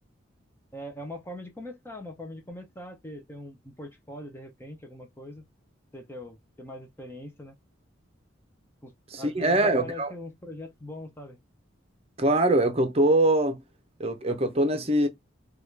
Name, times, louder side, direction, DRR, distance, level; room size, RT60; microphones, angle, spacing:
voice 1, 0.7-5.4 5.9-7.6 8.8-11.4, left 1 dB, 10° left, 0.6 m, -42 dB
voice 2, 9.1-10.1 12.2-13.6 14.0-15.1, right 1 dB, 30° right, 0.7 m, -23 dB
4.7 x 2.4 x 3.2 m
head